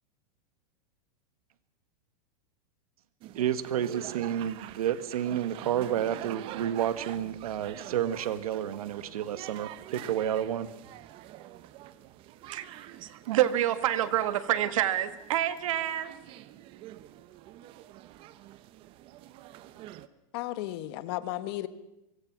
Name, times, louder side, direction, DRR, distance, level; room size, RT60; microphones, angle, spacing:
sound 1, 3.2-20.1, right 14 dB, 30° right, 0.8 m, -46 dB
voice 1, 3.3-10.7, right 10 dB, 90° right, 13 dB, 1.6 m, -30 dB
voice 2, 12.5-16.1, right 12 dB, 65° right, 11 dB, 1.7 m, -28 dB
voice 3, 20.3-21.7, left 15 dB, 45° left, 13 dB, 1.2 m, -34 dB
24.0 x 23.0 x 6.1 m, 0.91 s
supercardioid pair, 160°, 18 cm